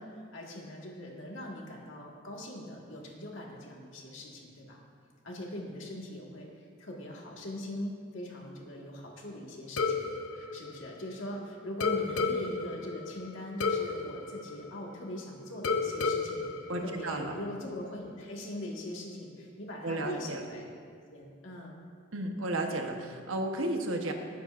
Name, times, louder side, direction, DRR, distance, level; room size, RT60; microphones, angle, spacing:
voice 1, 0.0-4.8 5.2-10.1 10.5-16.5 16.8-20.7 21.1-21.8, left 1 dB, 70° left, -1 dB, 1.9 m, -41 dB
sound 1, 9.8-11.4 11.8-15.2 15.6-17.6, left 4 dB, 85° left, 0.7 m, -33 dB
voice 2, 16.7-17.3 19.8-20.5 22.1-24.1, right 2 dB, 80° right, 3 dB, 1.2 m, -33 dB
19.5 x 9.1 x 2.6 m, 2.2 s
head